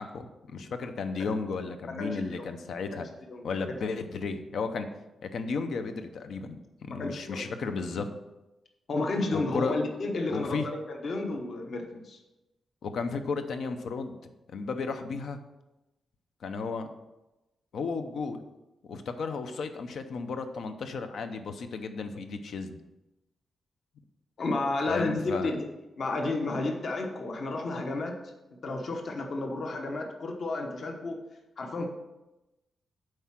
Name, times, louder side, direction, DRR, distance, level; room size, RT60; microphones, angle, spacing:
voice 1, 0.0-3.1 3.4-4.9 5.2-6.6 6.8-8.1 9.3-9.8 10.3-10.7 12.8-14.2 14.5-15.4 16.4-16.9 17.7-18.4 18.8-22.8 24.9-25.5, left 4 dB, 65° left, 8 dB, 0.7 m, -34 dB
voice 2, 2.0-2.4 2.9-3.0 3.3-3.4 6.9-7.4 8.9-12.2 24.4-25.6 26.0-28.2 28.6-31.2 31.6-31.9, left 2 dB, 45° left, 3 dB, 1.1 m, -32 dB
7.8 x 4.8 x 5.9 m, 1.0 s
wide cardioid pair, 170°, 0 cm